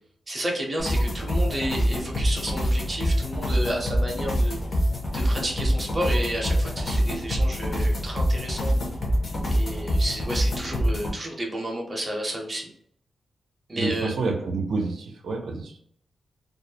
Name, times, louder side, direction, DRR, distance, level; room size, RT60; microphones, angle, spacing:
voice 1, 0.3-4.6 5.1-8.7 9.5-12.7 13.7-14.1, right 1 dB, 20° right, -1 dB, 0.6 m, -31 dB
sound 1, 0.8-11.1, equal, 40° left, 0.6 m, -25 dB
voice 2, 13.8-15.8, right 3 dB, 75° right, 2 dB, 0.5 m, -28 dB
2.3 x 2.0 x 2.7 m, 0.65 s
wide cardioid pair, 170°, 0 cm